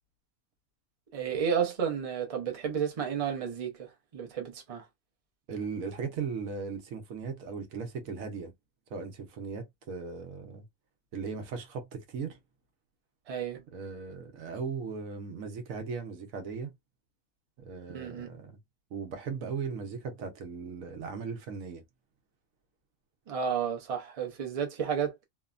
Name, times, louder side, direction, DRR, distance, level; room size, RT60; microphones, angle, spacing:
voice 1, 1.1-4.8 13.3-13.6 17.9-18.3 23.3-25.2, right 7 dB, 35° right, 0.6 m, -32 dB
voice 2, 5.5-8.5 8.9-10.7 11.1-12.4 13.7-16.7 17.6-18.6 18.9-21.8, right 5 dB, 75° right, 1.2 m, -37 dB
3.1 x 2.0 x 2.4 m
omnidirectional pair, 1.4 m